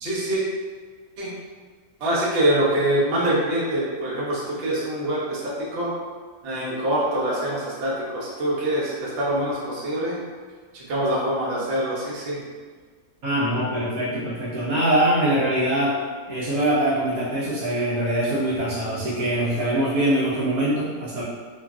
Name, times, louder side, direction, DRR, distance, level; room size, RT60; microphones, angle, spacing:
voice 1, 0.0-0.4 1.2-1.3 2.0-5.4 5.7-5.9 6.4-10.2 10.7-12.4, right 1 dB, 55° right, -6 dB, 0.8 m, -24 dB
voice 2, 13.2-16.0 16.3-21.2, right 1 dB, 80° right, -9 dB, 1.1 m, -23 dB
2.9 x 2.5 x 2.3 m, 1.5 s
omnidirectional pair, 1.6 m